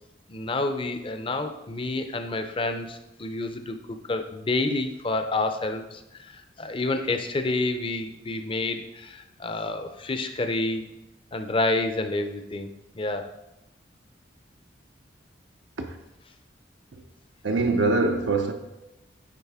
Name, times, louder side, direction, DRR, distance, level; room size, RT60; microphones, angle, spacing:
voice 1, 0.3-10.9 11.3-12.7 12.9-13.3, left 2 dB, 30° left, 0.6 m, -29 dB
voice 2, 17.4-18.5, right 3 dB, 80° right, 0.7 m, -23 dB
9.8 x 4.1 x 3.5 m
head